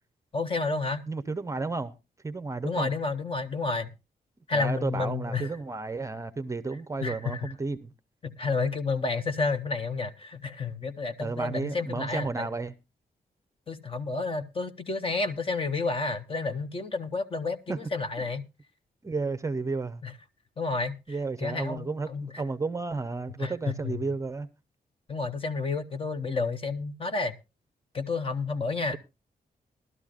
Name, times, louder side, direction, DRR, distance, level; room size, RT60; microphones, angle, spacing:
voice 1, 0.3-1.0 2.6-3.9 4.5-5.5 7.0-7.5 8.2-12.5 13.7-18.4 20.0-20.1 20.6-20.9 21.4-22.3 23.4-24.0 25.1-27.4 27.9-29.0, left 3 dB, 35° left, 0.8 m, -30 dB
voice 2, 1.1-1.9 2.2-2.9 4.5-7.9 11.2-12.7 17.7-17.8 19.0-20.0 21.1-22.1 22.4-24.5, right 3 dB, 20° right, 0.6 m, -32 dB
19.0 x 12.5 x 2.4 m
wide cardioid pair, 145°, 16 cm